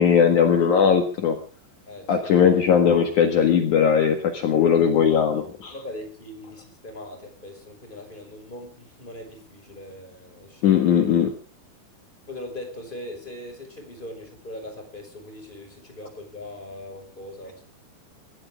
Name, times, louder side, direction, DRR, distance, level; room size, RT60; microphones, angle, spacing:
voice 1, 0.0-1.4 2.1-5.7 10.6-11.3, left 7 dB, 60° left, 5 dB, 2.0 m, -19 dB
voice 2, 1.9-2.3 4.4-4.6 5.7-10.8 12.3-17.6, left 1 dB, 10° left, 5 dB, 4.9 m, -40 dB
24.0 x 16.5 x 3.6 m, 0.38 s
omnidirectional pair, 5.9 m